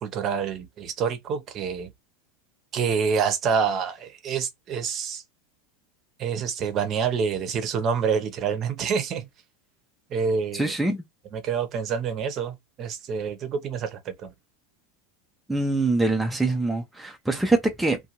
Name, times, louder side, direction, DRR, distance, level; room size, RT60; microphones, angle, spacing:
voice 1, 0.0-1.9 2.7-5.2 6.2-9.2 10.1-10.7 11.3-14.3, right 6 dB, 40° right, 0.7 m, -27 dB
voice 2, 10.5-11.0 15.5-18.0, right 2 dB, 5° right, 0.5 m, -24 dB
2.5 x 2.2 x 2.9 m
hypercardioid pair, 110°, 0 cm